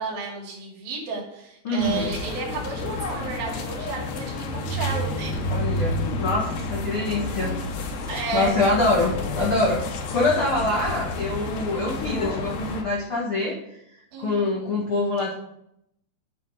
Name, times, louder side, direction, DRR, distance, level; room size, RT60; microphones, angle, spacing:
voice 1, 0.0-5.5 8.1-8.6 14.1-14.8, right 4 dB, 55° right, -3 dB, 4.0 m, -32 dB
voice 2, 1.6-2.0 5.5-7.6 8.3-9.8 10.1-13.6 14.2-15.3, left 2 dB, 85° left, -4 dB, 1.1 m, -24 dB
sound 1, 1.8-12.8, left 2 dB, 70° left, 2.2 m, -30 dB
9.6 x 4.8 x 5.5 m, 0.76 s
omnidirectional pair, 5.2 m